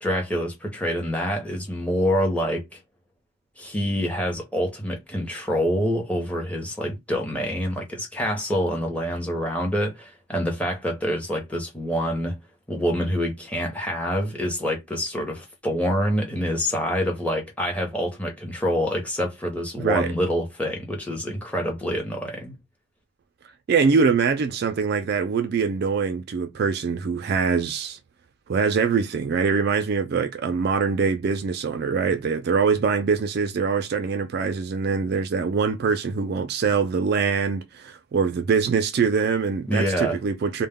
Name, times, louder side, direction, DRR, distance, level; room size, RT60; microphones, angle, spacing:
voice 1, 0.0-2.8 3.6-12.4 12.7-22.6 39.7-40.2, equal, 5° left, 0.7 m, -26 dB
voice 2, 19.8-20.1 23.7-28.0 28.5-40.7, right 5 dB, 50° right, 0.3 m, -23 dB
2.2 x 2.0 x 3.5 m
head